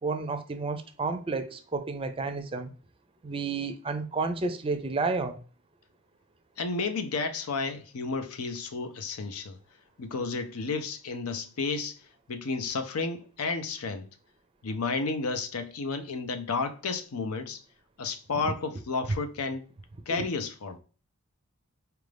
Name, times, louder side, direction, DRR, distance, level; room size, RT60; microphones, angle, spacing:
voice 1, 0.0-2.7 3.2-5.4 20.1-20.2, right 3 dB, 25° right, 0.4 m, -31 dB
voice 2, 6.6-9.6 10.0-12.0 12.3-14.1 14.6-17.6 18.0-19.6 20.1-20.8, left 4 dB, 90° left, 0.6 m, -32 dB
4.5 x 2.5 x 3.3 m
head